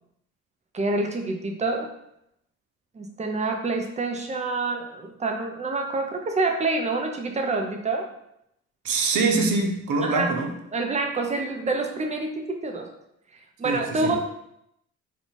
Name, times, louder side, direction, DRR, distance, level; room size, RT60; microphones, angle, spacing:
voice 1, 0.7-1.9 2.9-8.1 10.0-10.3 10.7-12.9 13.6-14.2, right 3 dB, 25° right, 3 dB, 0.6 m, -27 dB
voice 2, 8.8-10.5 13.6-14.2, right 3 dB, 75° right, 3 dB, 0.7 m, -24 dB
3.8 x 2.3 x 3.9 m, 0.79 s
cardioid pair, 90°, 30 cm